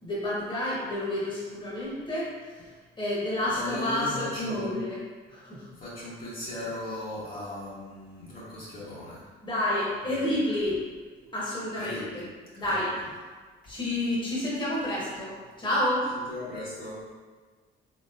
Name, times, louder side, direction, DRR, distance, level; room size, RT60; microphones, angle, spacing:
voice 1, 0.0-5.0 5.3-5.7 9.4-10.8 11.3-12.2 12.6-12.9 13.7-16.1, left 1 dB, 25° left, -7 dB, 1.2 m, -29 dB
voice 2, 3.5-4.7 5.8-9.3 10.1-10.3 11.8-12.2 12.6-12.9 16.1-17.0, left 1 dB, 45° left, -8 dB, 1.1 m, -38 dB
4.0 x 3.1 x 2.5 m, 1.5 s
cardioid pair, 90°, 20 cm